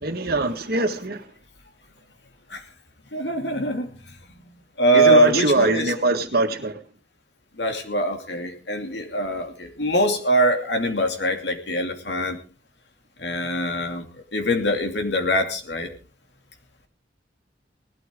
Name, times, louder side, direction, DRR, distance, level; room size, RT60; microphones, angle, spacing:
voice 1, 0.0-1.2 4.9-6.8, right 3 dB, 60° right, 1.8 m, -22 dB
voice 2, 3.1-3.9 4.8-5.9 7.6-12.4 13.2-14.0 14.3-15.9, right 1 dB, 70° left, 2.7 m, -23 dB
19.0 x 12.5 x 3.7 m
head